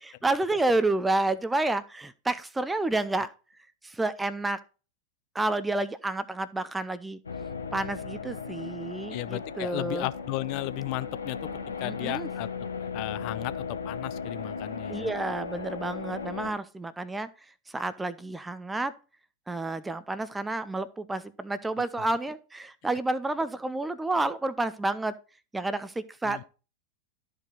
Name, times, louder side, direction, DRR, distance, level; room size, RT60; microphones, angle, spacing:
voice 1, 0.0-3.3 3.8-4.6 5.3-7.2 7.7-10.1 11.8-12.3 14.9-17.3 17.7-18.9 19.5-25.1 25.5-26.5, right 2 dB, 10° right, 0.5 m, -30 dB
sound 1, 7.2-16.5, left 5 dB, 75° left, 1.2 m, -37 dB
voice 2, 9.1-11.4 11.8-12.5 12.8-15.1 26.2-26.5, left 18 dB, 45° left, 0.5 m, -34 dB
12.5 x 4.8 x 3.8 m
figure-of-eight pair, 90°, 0 cm